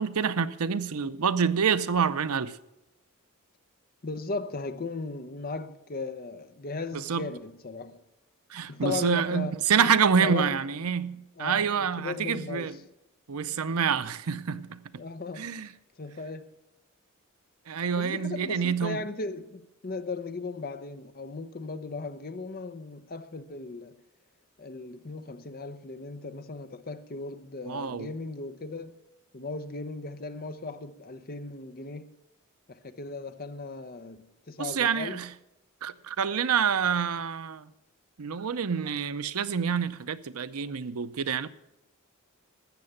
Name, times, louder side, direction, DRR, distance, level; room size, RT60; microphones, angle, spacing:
voice 1, 0.0-2.6 6.9-7.3 8.5-12.8 13.3-14.8 15.4-15.7 17.7-19.0 27.7-28.1 34.6-35.3 35.8-37.7 38.2-41.5, right 6 dB, 80° right, 0.6 m, -27 dB
voice 2, 4.0-8.0 8.7-9.6 10.2-10.6 11.4-12.8 15.0-15.5 16.0-16.5 18.0-24.0 24.6-28.9 29.3-32.1 32.7-35.2, left 3 dB, 40° left, 0.7 m, -37 dB
13.0 x 7.8 x 7.2 m
head